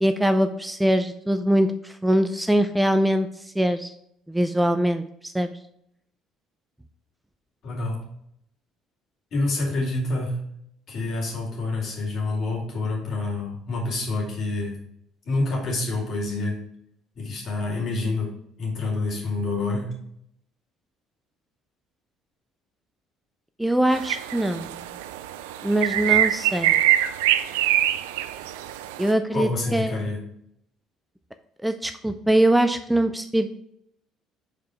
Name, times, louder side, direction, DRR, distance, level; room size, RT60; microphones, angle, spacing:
voice 1, 0.0-3.9 4.3-5.5 23.6-24.7 25.6-26.8 29.0-30.0 31.6-33.5, right 1 dB, 5° right, 9 dB, 0.4 m, -22 dB
voice 2, 7.6-8.0 9.3-10.4 10.9-14.8 15.2-16.6 17.1-20.0 29.3-30.2, left 2 dB, 55° left, -2 dB, 2.5 m, -27 dB
sound 1, 23.9-29.1, right 13 dB, 85° right, 0.3 m, -24 dB
5.1 x 4.6 x 4.4 m, 0.72 s
hypercardioid pair, 70°, 0 cm